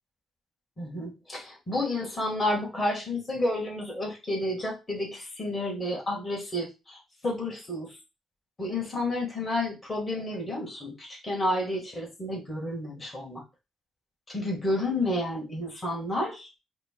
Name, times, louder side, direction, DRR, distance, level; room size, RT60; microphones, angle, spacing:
voice 1, 0.8-8.0 8.6-13.4 14.3-16.5, left 1 dB, 25° left, -3 dB, 2.2 m, -31 dB
4.9 x 2.3 x 4.7 m, 0.27 s
cardioid pair, 90°, 0 cm